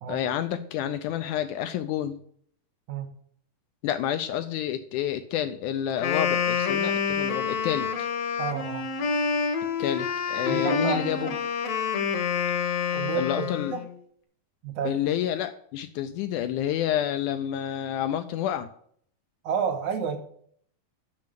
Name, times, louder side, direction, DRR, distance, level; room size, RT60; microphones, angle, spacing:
voice 1, 0.1-2.2 3.8-8.1 9.8-11.3 13.2-13.7 14.8-18.7, left 10 dB, 80° left, 9 dB, 1.8 m, -29 dB
Wind instrument woodwind instrument, 5.9-13.9, left 6 dB, 65° left, 1.9 m, -27 dB
voice 2, 8.4-8.8 10.5-11.4 12.9-13.8 14.6-14.9 19.4-20.2, right 7 dB, 75° right, 6 dB, 2.0 m, -30 dB
7.6 x 6.3 x 7.4 m, 0.62 s
omnidirectional pair, 3.9 m